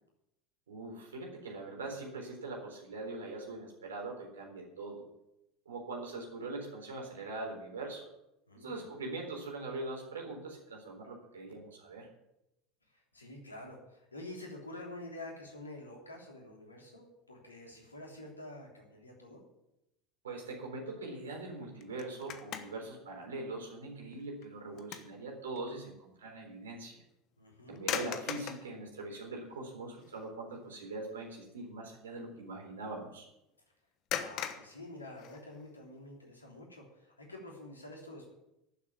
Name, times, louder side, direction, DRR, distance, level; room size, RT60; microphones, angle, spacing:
voice 1, 0.7-5.0 5.7-8.1 8.6-12.1 20.2-27.0 27.7-33.3, right 2 dB, 75° right, 1 dB, 3.9 m, -42 dB
voice 2, 12.9-19.4 27.4-27.8 34.1-38.3, left 1 dB, 90° left, 0 dB, 3.2 m, -48 dB
sound 1, 21.8-22.9 23.4-23.6 24.1-25.2 25.5-25.7 27.8-28.7 29.5-29.6 30.0-30.3 30.6-30.9 34.1-35.7, left 9 dB, 50° left, 1.2 m, -39 dB
11.5 x 7.5 x 9.5 m, 0.87 s
figure-of-eight pair, 75°, 0 cm